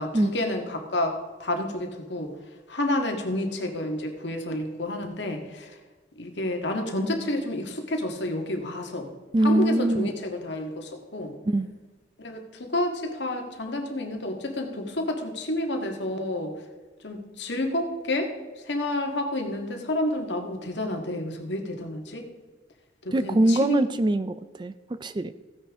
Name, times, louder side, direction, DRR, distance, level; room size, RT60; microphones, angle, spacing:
voice 1, 0.0-2.3 2.7-5.7 6.2-9.1 9.4-11.3 12.2-16.5 17.0-22.2 23.1-23.8, left 1 dB, 65° left, 3 dB, 1.8 m, -30 dB
voice 2, 9.3-10.1 11.4-11.7 23.1-25.3, right 1 dB, 25° right, 13 dB, 0.3 m, -23 dB
15.5 x 9.7 x 3.7 m, 1.3 s
head